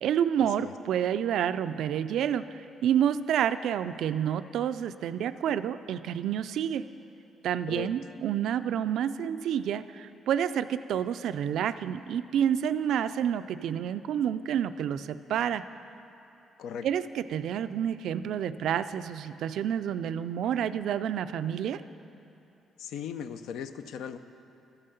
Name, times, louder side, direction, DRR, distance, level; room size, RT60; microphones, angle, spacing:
voice 1, 0.0-6.9 7.4-15.6 16.8-21.8, right 9 dB, 75° right, 13 dB, 0.3 m, -29 dB
voice 2, 22.8-24.2, left 8 dB, 85° left, 10 dB, 0.4 m, -37 dB
13.0 x 5.6 x 6.7 m, 2.9 s
cardioid pair, 90°, 0 cm